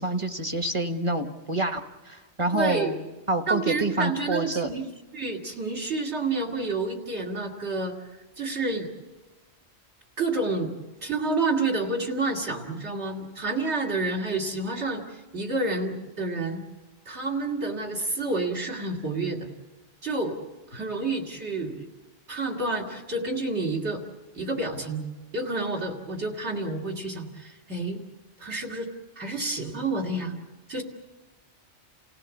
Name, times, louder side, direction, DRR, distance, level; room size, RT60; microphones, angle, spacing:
voice 1, 0.0-3.0 3.3-4.7, right 2 dB, 30° right, 7 dB, 1.1 m, -27 dB
voice 2, 2.5-2.9 3.5-8.0 8.4-8.9 10.2-10.7 11.0-16.6 17.1-19.5 20.0-20.4 20.7-21.9 22.3-24.0 24.3-25.0 25.3-28.0 28.4-28.9 29.2-30.4 30.7-30.8, right 2 dB, 70° right, 0 dB, 2.7 m, -29 dB
29.0 x 16.5 x 7.2 m, 1.2 s
omnidirectional pair, 1.2 m